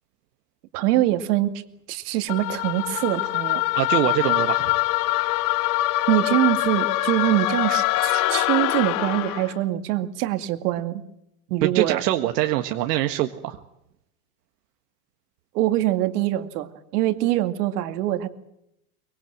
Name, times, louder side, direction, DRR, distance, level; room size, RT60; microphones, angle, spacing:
voice 1, 0.7-1.5 1.9-3.6 6.1-11.0 11.5-12.0 15.5-18.3, right 14 dB, 75° right, 8 dB, 2.3 m, -24 dB
sound 1, 2.3-9.5, left 17 dB, 40° left, 0.9 m, -24 dB
voice 2, 3.7-4.8 11.6-13.6, right 14 dB, 90° right, 5 dB, 1.7 m, -24 dB
24.5 x 23.0 x 7.6 m, 0.81 s
supercardioid pair, 140°, 47 cm